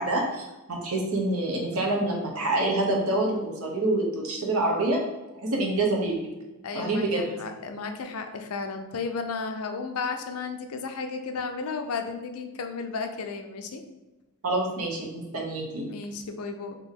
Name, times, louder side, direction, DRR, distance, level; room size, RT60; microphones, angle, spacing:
voice 1, 0.0-5.0 5.4-6.3 6.7-7.3 14.4-15.9, right 2 dB, 70° right, 0 dB, 0.9 m, -27 dB
voice 2, 6.6-13.8 15.7-16.8, left 4 dB, 70° left, 6 dB, 0.5 m, -34 dB
3.7 x 2.8 x 3.6 m, 1.1 s
head